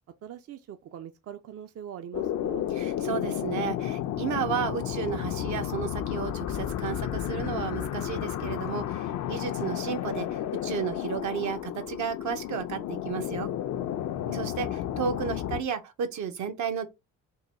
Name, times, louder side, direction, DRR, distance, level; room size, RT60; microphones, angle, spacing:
voice 1, 0.2-2.7 14.2-14.7, right 9 dB, 55° right, 0.5 m, -43 dB
sound 1, 2.1-15.6, left 11 dB, 65° left, 0.5 m, -32 dB
voice 2, 2.8-13.5 14.3-16.9, right 7 dB, 75° right, 0.8 m, -33 dB
3.8 x 2.2 x 4.1 m
cardioid pair, 90°, 30 cm